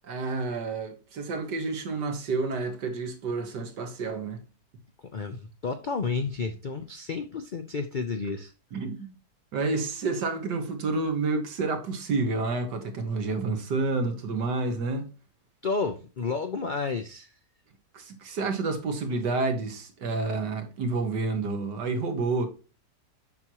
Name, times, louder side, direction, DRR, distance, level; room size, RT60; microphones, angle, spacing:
voice 1, 0.0-4.4 8.7-9.2 9.5-15.1 17.9-22.5, right 3 dB, 85° right, 2.0 m, -29 dB
voice 2, 5.1-8.5 15.6-17.3, left 4 dB, 90° left, 0.4 m, -31 dB
7.5 x 6.1 x 2.9 m
omnidirectional pair, 1.8 m